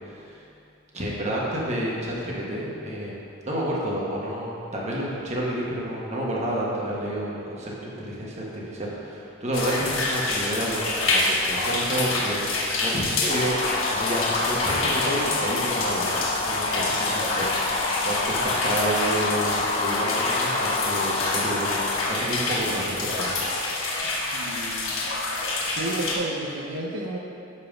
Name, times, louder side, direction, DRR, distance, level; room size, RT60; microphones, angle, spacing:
voice 1, 0.1-0.4 0.9-3.2 3.4-16.1 16.4-21.8 22.1-23.6, right 1 dB, 35° right, -5 dB, 1.2 m, -30 dB
sound 1, 9.5-26.1, left 2 dB, 90° left, 1.2 m, -27 dB
sound 2, 13.3-22.1, left 3 dB, 30° left, 0.4 m, -29 dB
voice 2, 24.3-25.0 25.7-27.2, right 1 dB, 75° right, -2 dB, 0.7 m, -31 dB
6.8 x 5.5 x 5.2 m, 2.6 s
head